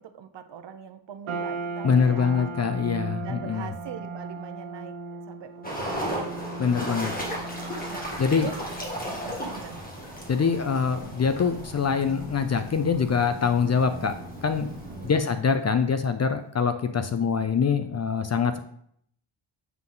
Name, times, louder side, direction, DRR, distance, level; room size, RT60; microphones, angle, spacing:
voice 1, 0.0-2.5 3.1-6.0 7.8-8.6 9.2-9.8 14.9-15.2, right 8 dB, 60° right, 8 dB, 0.8 m, -42 dB
sound 1, 1.3-15.7, right 3 dB, 80° right, 1.2 m, -39 dB
voice 2, 1.8-3.7 6.6-7.1 8.2-8.5 10.3-14.1 14.4-14.7 15.0-18.6, left 6 dB, 35° left, 9 dB, 0.5 m, -24 dB
sound 2, 5.6-15.2, right 1 dB, 15° left, 2.0 m, -35 dB
7.4 x 5.8 x 3.8 m, 0.67 s
cardioid pair, 120°, 50 cm